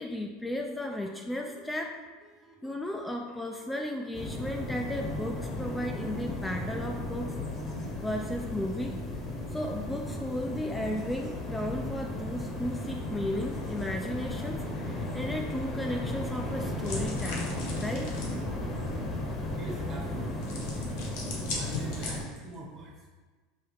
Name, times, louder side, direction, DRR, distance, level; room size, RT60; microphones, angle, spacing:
voice 1, 0.0-2.0 2.6-7.4 7.7-9.0 9.5-18.2, left 1 dB, 10° left, 2 dB, 0.3 m, -35 dB
sound 1, 0.8-15.8, right 1 dB, 25° right, 1.1 m, -55 dB
sound 2, 4.1-22.2, left 2 dB, 35° left, 0.9 m, -35 dB
sound 3, 16.8-18.4 20.4-22.5, left 3 dB, 75° left, 1.1 m, -39 dB
voice 2, 19.6-20.5 21.5-23.1, right 2 dB, 45° right, -1 dB, 1.4 m, -42 dB
5.5 x 2.8 x 3.2 m, 1.4 s
hypercardioid pair, 90°, 0 cm